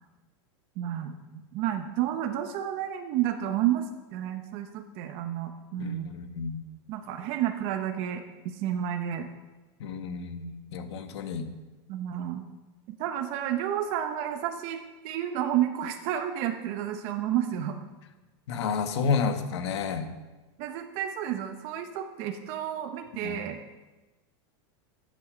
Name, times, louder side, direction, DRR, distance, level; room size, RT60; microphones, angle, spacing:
voice 1, 0.8-1.1 1.5-6.1 6.9-8.2 8.5-9.3 11.9-12.4 12.9-14.8 15.0-17.8 20.6-23.6, right 11 dB, 45° right, 6 dB, 0.9 m, -30 dB
voice 2, 5.8-6.6 9.8-11.4 18.5-20.0 23.2-23.4, left 5 dB, 80° left, 7 dB, 1.5 m, -30 dB
13.0 x 8.4 x 5.1 m, 1.2 s
supercardioid pair, 155°, 14 cm